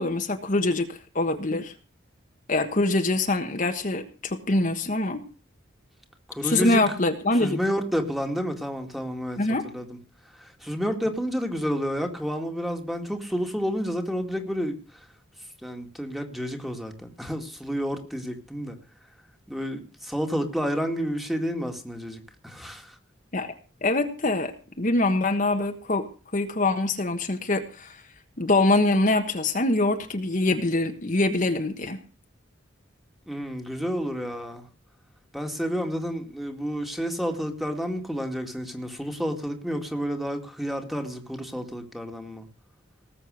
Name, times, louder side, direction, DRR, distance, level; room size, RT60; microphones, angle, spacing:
voice 1, 0.0-1.7 2.5-5.2 6.4-7.6 9.4-9.6 23.3-23.5 23.8-26.1 26.3-28.0 28.4-32.0, left 2 dB, 40° left, 1.3 m, -24 dB
voice 2, 6.3-6.8 7.4-10.0 10.2-15.1 15.6-18.8 19.5-23.0 33.3-34.7 35.3-42.5, equal, ahead, 2.1 m, -30 dB
19.0 x 7.8 x 6.4 m
head